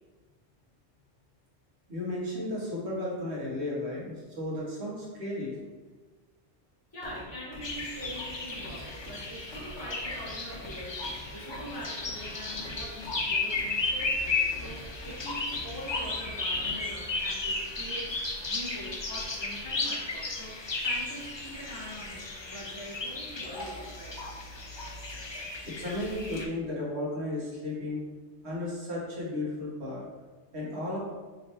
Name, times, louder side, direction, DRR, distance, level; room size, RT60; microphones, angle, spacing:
voice 1, 1.9-5.6 25.6-28.0 28.4-30.0 30.5-31.0, left 1 dB, 65° right, -5 dB, 1.4 m, -34 dB
voice 2, 6.9-18.2 18.5-24.3, right 1 dB, 20° left, -6 dB, 1.2 m, -43 dB
sound 1, 7.0-17.0, left 1 dB, 90° left, 1.0 m, -47 dB
sound 2, 7.6-26.5, left 3 dB, 45° left, 0.3 m, -34 dB
4.9 x 3.2 x 2.9 m, 1.3 s
omnidirectional pair, 1.2 m